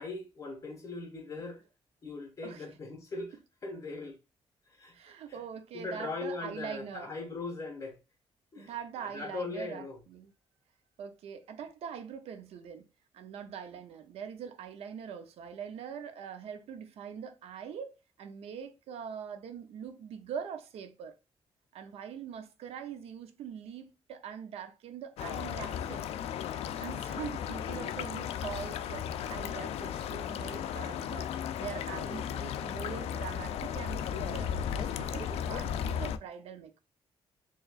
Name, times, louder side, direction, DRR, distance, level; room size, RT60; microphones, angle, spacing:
voice 1, 0.0-1.6 2.0-3.4 3.6-4.2 4.7-4.9 5.3-5.4 5.7-8.0 8.5-10.0, left 3 dB, 30° left, 1.4 m, -40 dB
voice 2, 4.9-7.1 8.6-10.3 11.0-12.9 13.1-21.1 21.7-26.1 26.8-36.8, right 7 dB, 80° right, 0.6 m, -43 dB
sound 1, 25.2-36.2, left 9 dB, 85° left, 0.4 m, -35 dB
4.5 x 3.1 x 2.4 m
cardioid pair, 140°, 10 cm